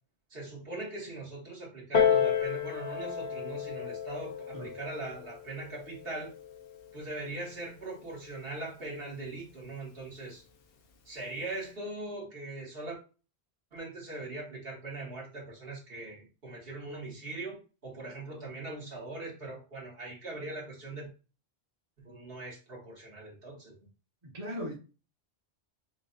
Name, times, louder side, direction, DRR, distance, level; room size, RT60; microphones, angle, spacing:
voice 1, 0.3-6.3 6.9-10.4 11.1-13.0 13.7-21.1 22.1-23.7, right 2 dB, 60° right, 1.7 m, -41 dB
Piano, 1.9-7.1 8.0-8.1, left 7 dB, 65° left, 0.9 m, -31 dB
voice 2, 24.2-24.7, equal, 35° right, 1.1 m, -38 dB
5.9 x 2.4 x 2.6 m
omnidirectional pair, 1.1 m